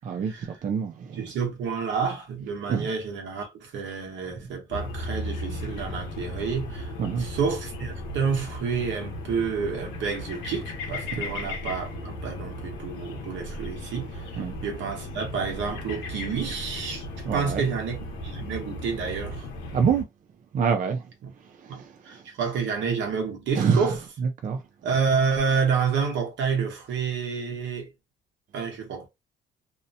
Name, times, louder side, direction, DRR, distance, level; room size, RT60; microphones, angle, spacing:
voice 1, 0.1-1.2 2.7-2.9 7.0-7.3 11.1-11.2 14.4-14.5 17.2-17.6 19.7-20.0 20.5-21.1 21.4-22.2 23.5-23.9 24.2-24.6, right 6 dB, 45° right, 0.4 m, -26 dB
voice 2, 1.2-6.9 7.2-17.0 17.3-19.5 21.2-21.3 21.7-24.0 24.8-27.9 28.5-29.1, right 5 dB, 75° right, 1.0 m, -29 dB
sound 1, 4.7-20.0, left 1 dB, 90° left, 0.8 m, -36 dB
2.7 x 2.0 x 2.7 m
cardioid pair, 95°, 19 cm